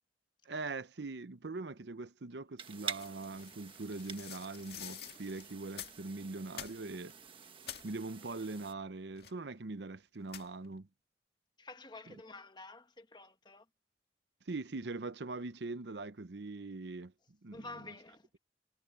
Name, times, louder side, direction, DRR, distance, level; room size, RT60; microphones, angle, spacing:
voice 1, 0.4-7.1 7.8-10.9 12.1-12.2 14.5-17.7, right 3 dB, 80° right, 0.8 m, -42 dB
sound 1, 2.6-8.7, right 6 dB, 30° right, 1.5 m, -48 dB
sound 2, 3.0-6.1 6.5-7.1 7.4-7.9 9.2-9.6 10.3-10.7, left 10 dB, 65° left, 1.9 m, -48 dB
voice 2, 11.6-13.7 17.5-18.4, left 3 dB, 25° left, 1.3 m, -50 dB
head